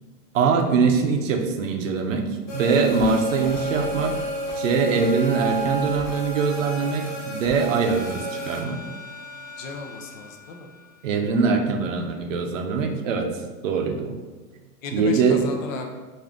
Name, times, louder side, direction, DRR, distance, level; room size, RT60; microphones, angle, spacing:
voice 1, 0.3-4.3 4.6-8.8 11.0-13.3 13.6-14.2 14.9-15.4, right 5 dB, 55° right, 4 dB, 0.5 m, -23 dB
sound 1, 2.5-8.6, equal, 30° left, 0.7 m, -31 dB
sound 2, 3.3-8.8, right 6 dB, 40° right, 1.3 m, -36 dB
sound 3, 7.8-11.7, left 3 dB, 15° right, 0.7 m, -43 dB
voice 2, 9.6-10.7 14.8-15.9, left 3 dB, 60° left, 4 dB, 0.6 m, -35 dB
3.6 x 2.6 x 3.5 m, 1.3 s
supercardioid pair, 170°, 46 cm